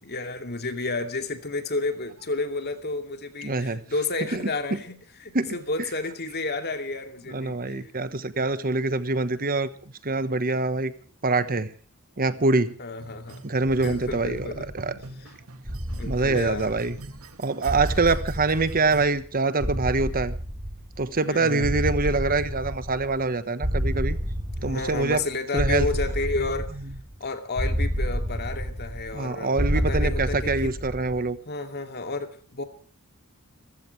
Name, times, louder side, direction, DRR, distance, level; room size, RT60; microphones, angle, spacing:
voice 1, 0.0-7.9 12.8-13.4 13.7-15.3 15.9-16.8 21.3-21.9 24.5-26.8 27.2-30.7 31.5-32.6, left 3 dB, 50° left, 6 dB, 2.6 m, -31 dB
voice 2, 3.4-3.8 4.3-4.5 5.3-5.6 7.3-10.9 11.2-11.7 12.2-12.7 13.4-14.5 14.7-14.9 16.0-17.0 17.4-20.4 21.0-24.2 24.6-25.2 25.5-25.9 29.1-31.4, right 3 dB, 40° right, 13 dB, 1.2 m, -25 dB
sound 1, 13.0-19.1, right 2 dB, 85° right, 2.4 m, -44 dB
sound 2, 14.1-15.0 15.7-17.2 17.7-19.3 19.6-21.2 21.6-23.3 23.6-25.2 25.6-27.2 27.6-29.2 29.6-31.2, equal, 25° right, 4.1 m, -30 dB
27.0 x 15.5 x 3.3 m, 0.41 s
head